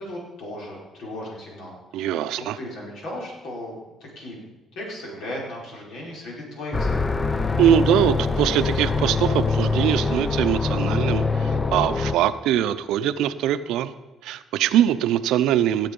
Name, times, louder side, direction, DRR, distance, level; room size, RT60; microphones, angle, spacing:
voice 1, 0.0-3.7 4.1-4.4 4.7-7.3, left 1 dB, 75° left, -3 dB, 5.0 m, -36 dB
voice 2, 1.9-2.6 7.6-13.9 14.2-15.9, right 10 dB, 80° right, 12 dB, 0.6 m, -22 dB
sound 1, 6.7-12.1, left 4 dB, 25° left, 0.7 m, -23 dB
17.0 x 7.5 x 5.4 m, 1.1 s
cardioid pair, 80°, 0 cm